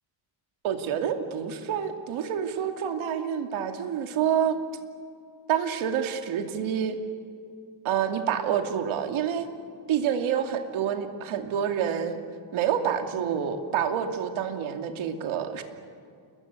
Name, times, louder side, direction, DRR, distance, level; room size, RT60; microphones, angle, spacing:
voice 1, 0.6-4.6 5.5-7.0 7.8-9.5 9.9-12.2 12.5-15.6, right 8 dB, 80° right, 5 dB, 2.6 m, -28 dB
29.5 x 21.0 x 8.3 m, 2.3 s
cardioid pair, 160°, 47 cm